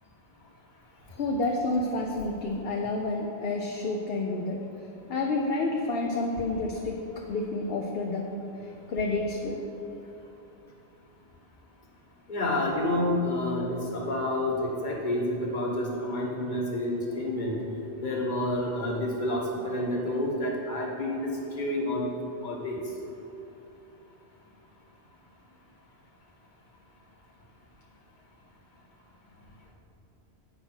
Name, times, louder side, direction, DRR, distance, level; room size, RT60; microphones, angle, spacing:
voice 1, 1.1-4.6 5.1-7.0 7.3-8.3 8.9-9.6, left 2 dB, 65° left, 0 dB, 0.9 m, -29 dB
voice 2, 12.3-17.5 18.0-21.3 21.6-22.1 22.4-22.8, left 1 dB, 45° left, -2 dB, 1.4 m, -29 dB
8.7 x 5.0 x 6.2 m, 2.9 s
omnidirectional pair, 1.1 m